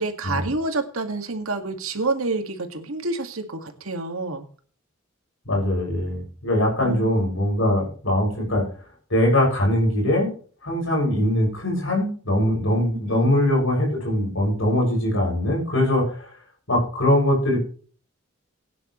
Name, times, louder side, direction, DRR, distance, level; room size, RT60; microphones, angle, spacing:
voice 1, 0.0-4.5 6.8-7.1 13.1-13.3, right 3 dB, 90° right, 5 dB, 2.1 m, -28 dB
voice 2, 5.4-8.6 9.1-10.3 10.6-16.1 16.7-17.6, left 1 dB, 70° left, -1 dB, 6.7 m, -21 dB
18.0 x 10.0 x 3.2 m, 0.43 s
head